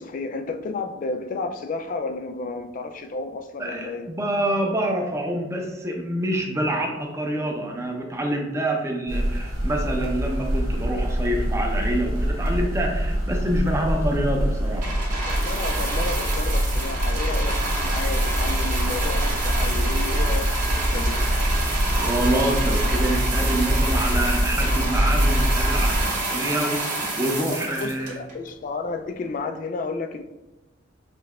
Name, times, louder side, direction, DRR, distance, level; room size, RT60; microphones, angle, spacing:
voice 1, 0.0-4.1 15.3-21.2 27.8-30.2, left 3 dB, 45° left, 7 dB, 0.3 m, -32 dB
voice 2, 3.6-14.9 21.9-28.2, right 1 dB, 15° right, 1 dB, 0.6 m, -26 dB
sound 1, 9.1-26.0, equal, 85° right, 1.3 m, -24 dB
sound 2, 14.8-28.5 29.2-29.3, right 2 dB, 40° right, 1.3 m, -29 dB
5.3 x 3.2 x 2.3 m, 1.1 s
head